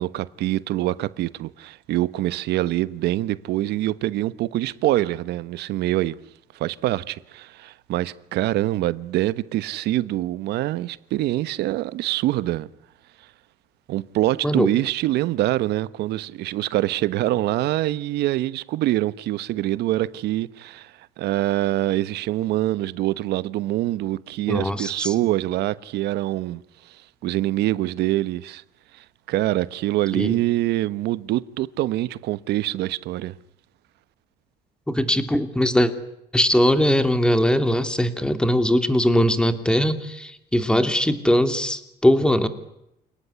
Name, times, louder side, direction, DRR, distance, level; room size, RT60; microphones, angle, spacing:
voice 1, 0.0-6.2 6.5-12.7 13.9-26.6 26.9-27.0 27.2-28.6 28.9-33.3, right 15 dB, 80° right, 1.1 m, -25 dB
voice 2, 24.5-25.1 30.1-30.4 34.9-35.9 36.3-42.5, equal, 5° left, 2.9 m, -20 dB
28.5 x 19.0 x 9.8 m
cardioid pair, 110°, 17 cm